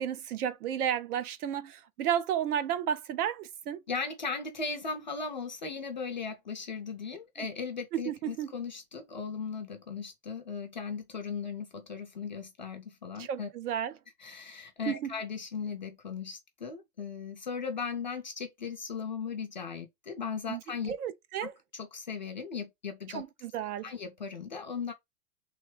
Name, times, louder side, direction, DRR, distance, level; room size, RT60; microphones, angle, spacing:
voice 1, 0.0-3.8 7.4-7.5 8.1-8.5 13.2-13.9 14.9-15.1 20.5-20.6 20.9-21.5 23.1-23.9, right 9 dB, 70° right, 0.7 m, -32 dB
voice 2, 3.9-13.5 14.2-20.9 21.4-23.2 23.8-24.9, left 5 dB, 35° left, 0.4 m, -37 dB
3.4 x 3.3 x 4.6 m
supercardioid pair, 175°, 48 cm